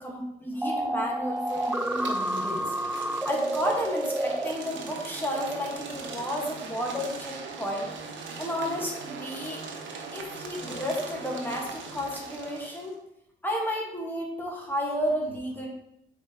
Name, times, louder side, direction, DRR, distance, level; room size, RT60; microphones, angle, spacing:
voice 1, 0.0-2.7 3.0-7.9 8.4-9.6 10.1-12.9 13.4-15.7, equal, 10° left, -1 dB, 1.6 m, -32 dB
sound 1, 0.6-4.5, right 1 dB, 5° right, 0.3 m, -29 dB
sound 2, 1.4-12.9, right 4 dB, 70° right, 1.0 m, -40 dB
7.1 x 4.4 x 3.0 m, 0.82 s
cardioid pair, 90°, 20 cm